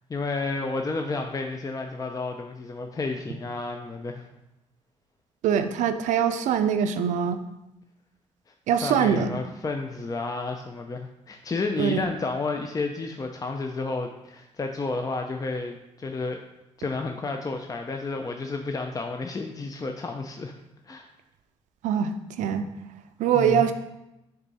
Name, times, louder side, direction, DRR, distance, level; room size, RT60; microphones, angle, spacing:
voice 1, 0.1-4.3 8.8-16.4 16.8-20.5 20.9-21.1 23.3-23.7, left 3 dB, 30° left, 4 dB, 0.5 m, -31 dB
voice 2, 5.4-7.4 8.7-9.4 11.8-12.1 21.8-22.7 23.2-23.7, right 8 dB, 85° right, 9 dB, 0.5 m, -23 dB
6.7 x 3.6 x 4.1 m, 0.91 s
supercardioid pair, 65°, 12 cm